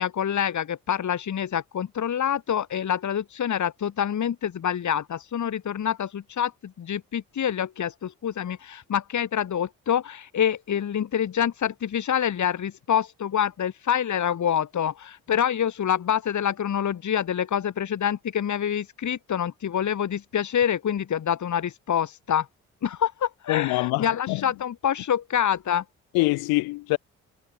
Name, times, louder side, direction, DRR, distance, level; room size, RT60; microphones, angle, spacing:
voice 1, 0.0-22.5 22.8-25.8, left 9 dB, 55° left, 2.0 m, -26 dB
voice 2, 23.5-24.4 26.1-27.0, left 23 dB, 85° left, 2.2 m, -24 dB
hypercardioid pair, 50°, 36 cm